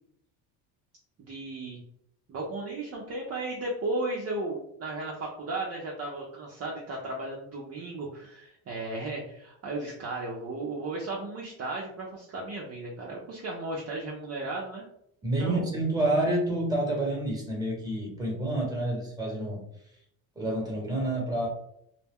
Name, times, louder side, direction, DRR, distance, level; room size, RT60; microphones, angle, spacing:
voice 1, 1.2-1.8 2.3-14.9 15.4-15.7, right 2 dB, 35° right, -3 dB, 0.6 m, -35 dB
voice 2, 15.2-19.6 20.3-21.5, right 1 dB, 10° right, -1 dB, 1.1 m, -28 dB
2.2 x 2.1 x 3.4 m, 0.74 s
supercardioid pair, 90°, 40 cm